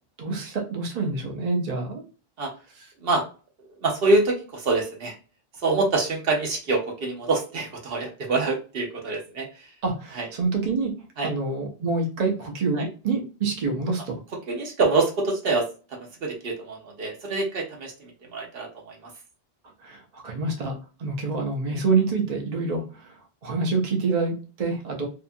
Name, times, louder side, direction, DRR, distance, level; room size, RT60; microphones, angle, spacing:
voice 1, 0.2-2.0 9.8-10.9 11.2-14.2 19.8-20.7 21.0-23.0 23.4-25.1, right 4 dB, 45° right, 1 dB, 0.7 m, -26 dB
voice 2, 3.8-5.1 5.6-9.7 10.1-10.3 11.2-11.3 12.7-12.9 14.5-15.7 16.2-19.0, right 3 dB, 70° right, 0 dB, 0.9 m, -25 dB
2.8 x 2.3 x 2.5 m, 0.35 s
omnidirectional pair, 1.0 m